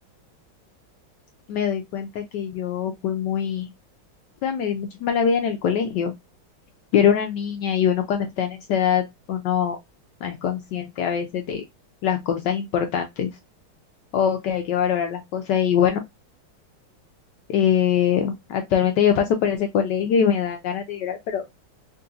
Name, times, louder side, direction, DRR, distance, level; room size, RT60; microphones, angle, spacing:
voice 1, 1.5-3.7 4.4-6.1 6.9-9.8 10.2-11.6 12.0-13.3 14.1-16.0 17.5-21.4, left 8 dB, 75° left, 1.0 m, -23 dB
3.8 x 2.6 x 2.6 m
omnidirectional pair, 2.2 m